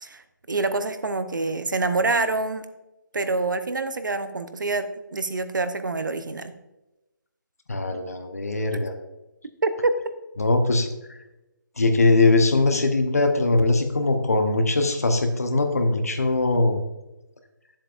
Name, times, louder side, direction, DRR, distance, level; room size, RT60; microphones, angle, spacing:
voice 1, 0.0-2.7 3.1-6.5 9.6-9.9, right 3 dB, 70° right, 11 dB, 0.7 m, -26 dB
voice 2, 7.7-8.9 10.4-10.9 11.8-16.8, left 2 dB, 45° left, 6 dB, 0.9 m, -21 dB
9.2 x 7.4 x 2.5 m, 0.98 s
hypercardioid pair, 180°, 11 cm